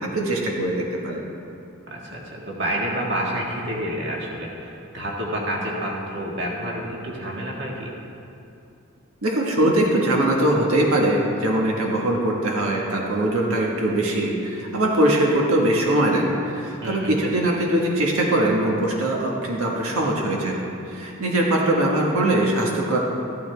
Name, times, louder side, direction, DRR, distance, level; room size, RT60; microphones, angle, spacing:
voice 1, 0.0-1.2 9.2-16.2 16.5-20.5 20.9-23.0, right 1 dB, 90° right, -2 dB, 1.5 m, -21 dB
voice 2, 1.9-7.9 16.8-17.1, right 1 dB, 50° right, -2 dB, 1.7 m, -29 dB
14.0 x 12.5 x 3.4 m, 2.7 s
head